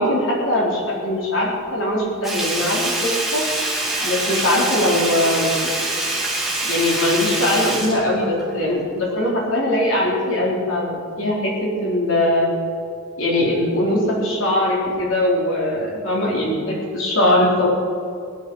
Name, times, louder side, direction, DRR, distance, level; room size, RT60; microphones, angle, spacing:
voice 1, 0.0-3.4 4.0-5.7 6.6-12.5 13.2-17.7, left 1 dB, 70° left, -3 dB, 3.7 m, -21 dB
Sink (filling or washing), 2.2-8.8 9.1-9.2, right 2 dB, ahead, 2.2 m, -25 dB
18.0 x 10.0 x 5.5 m, 2.3 s
head